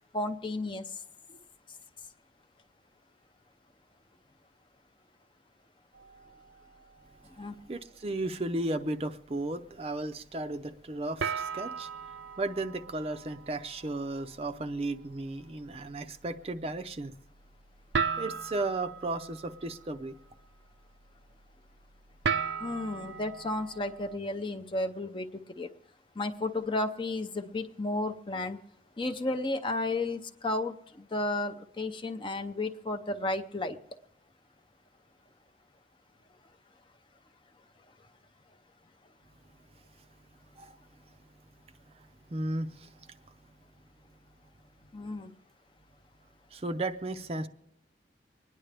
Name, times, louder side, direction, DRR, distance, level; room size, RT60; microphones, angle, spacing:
voice 1, 0.1-0.9 7.4-7.5 22.6-25.7 26.2-28.6 29.0-33.8 44.9-45.3, left 2 dB, 25° left, 8 dB, 0.6 m, -33 dB
sound 1, 5.9-7.5 7.9-8.2 8.8-8.9 11.2-24.2, right 6 dB, 80° right, 0.6 m, -38 dB
voice 2, 7.7-17.1 18.2-20.1 40.5-40.8 41.9-43.2 46.5-47.5, right 2 dB, 30° right, 8 dB, 0.5 m, -35 dB
25.0 x 10.0 x 3.4 m, 0.80 s
head